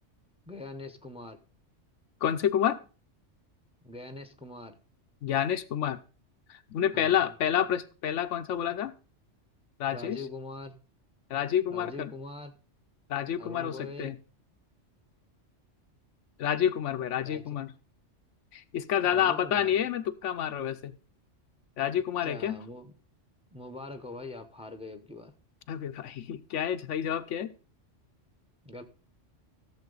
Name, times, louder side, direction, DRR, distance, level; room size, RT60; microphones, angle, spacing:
voice 1, 0.5-1.4 3.8-4.8 6.9-7.3 9.9-10.8 11.7-12.5 13.4-14.2 17.2-17.5 19.0-19.8 22.2-22.9 23.5-25.3 28.6-28.8, left 2 dB, 5° right, 8 dB, 0.8 m, -43 dB
voice 2, 2.2-2.8 5.2-6.0 6.5-8.9 9.8-10.2 11.3-12.1 13.1-14.2 16.4-17.7 18.5-20.9 21.8-22.6 25.7-27.5, left 9 dB, 80° left, 11 dB, 1.0 m, -29 dB
14.0 x 7.3 x 3.9 m, 0.36 s
omnidirectional pair, 1.2 m